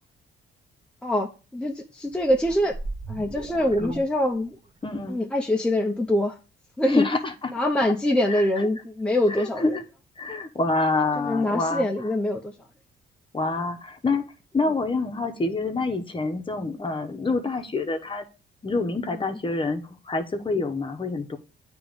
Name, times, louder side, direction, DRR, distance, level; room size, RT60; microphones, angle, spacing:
voice 1, 1.0-2.8 3.1-4.6 5.1-6.4 6.8-7.0 7.5-9.8 11.2-12.5 19.1-19.4, left 1 dB, 5° left, 0.7 m, -24 dB
sound 1, 2.1-4.8, right 2 dB, 25° right, 1.2 m, -38 dB
voice 2, 4.8-5.2 6.9-7.5 8.3-8.7 9.3-9.8 10.2-11.9 13.3-14.2 14.5-18.3 18.6-21.4, left 3 dB, 25° left, 1.0 m, -27 dB
8.8 x 3.0 x 5.1 m
cardioid pair, 90°, 20 cm